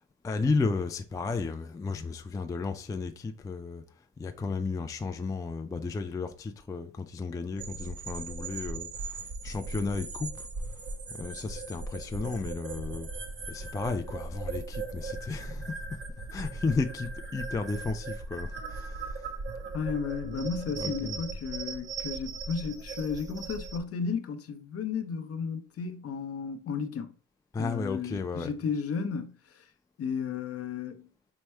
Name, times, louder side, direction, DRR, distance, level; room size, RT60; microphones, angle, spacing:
voice 1, 0.2-3.8 4.2-10.5 11.1-13.1 13.5-15.7 16.3-19.0 20.2-21.2 27.5-28.5, left 4 dB, 10° left, 0.3 m, -33 dB
sound 1, 7.6-23.8, right 3 dB, 40° right, 0.9 m, -38 dB
voice 2, 19.7-27.2 27.6-29.7 30.0-31.1, left 6 dB, 50° left, 0.7 m, -34 dB
4.6 x 2.1 x 4.3 m
cardioid pair, 90°, 30 cm